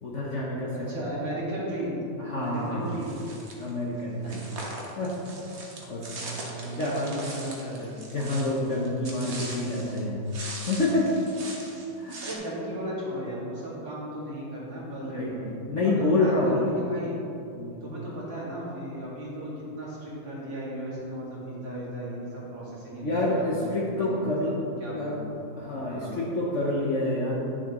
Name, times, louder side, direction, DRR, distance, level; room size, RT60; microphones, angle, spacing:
voice 1, 0.0-0.9 2.2-3.0 3.6-4.5 5.0-5.1 5.9-6.1 6.6-7.1 8.0-10.3 10.7-11.1 12.0-12.2 15.0-16.6 17.5-17.8 23.0-24.5 25.0-25.2 25.6-27.5, left 2 dB, 50° left, -4 dB, 0.9 m, -28 dB
voice 2, 0.7-3.2 5.8-8.0 12.2-15.6 15.8-17.1 17.8-19.5 19.8-24.5 24.8-25.3 25.9-26.2, right 1 dB, 70° right, -7 dB, 2.8 m, -36 dB
sound 1, 2.9-3.7 4.2-10.0 10.3-12.4, right 2 dB, 45° right, 1.1 m, -40 dB
9.6 x 6.7 x 3.0 m, 2.8 s
omnidirectional pair, 2.1 m